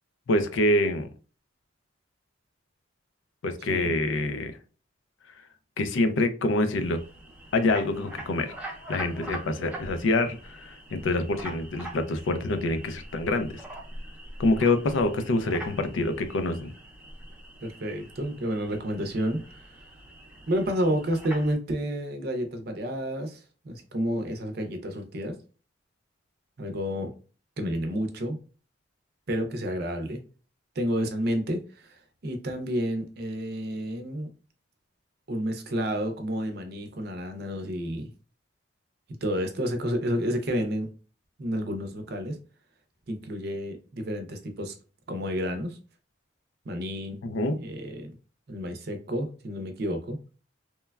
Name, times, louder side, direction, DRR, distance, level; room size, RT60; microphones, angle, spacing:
voice 1, 0.3-1.1 3.4-4.6 5.8-7.0 7.5-8.5 8.9-13.5 14.4-16.7 47.2-47.6, left 2 dB, 70° left, 9 dB, 0.4 m, -26 dB
sound 1, 6.7-21.5, right 1 dB, 10° right, 0.6 m, -43 dB
voice 2, 17.6-19.6 20.5-25.4 26.6-27.1 27.6-28.4 29.3-30.2 30.8-34.3 35.3-38.1 39.2-40.9 41.4-42.4 43.1-44.7 45.1-45.8 46.7-47.2 47.6-48.1 48.5-50.2, equal, 55° right, 6 dB, 0.5 m, -30 dB
3.1 x 2.2 x 2.2 m, 0.37 s
head